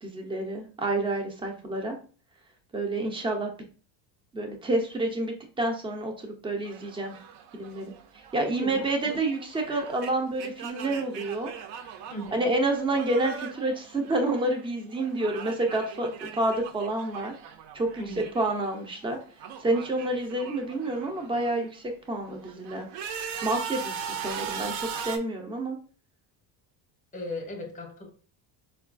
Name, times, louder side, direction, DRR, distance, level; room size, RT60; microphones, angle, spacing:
voice 1, 0.0-2.0 2.7-3.5 4.3-7.2 7.5-7.9 8.3-11.5 12.3-17.3 17.7-18.0 18.3-19.2 19.6-22.9 23.4-25.8, right 2 dB, 10° right, 3 dB, 0.4 m, -29 dB
sound 1, 6.7-14.7 14.9-18.7 19.0-21.6 22.2-25.2, right 7 dB, 60° right, 0.5 m, -40 dB
voice 2, 8.6-9.2 12.1-12.4 18.0-18.3 27.1-28.1, left 1 dB, 15° left, 3 dB, 0.7 m, -37 dB
4.2 x 2.3 x 2.4 m, 0.40 s
cardioid pair, 135°, 48 cm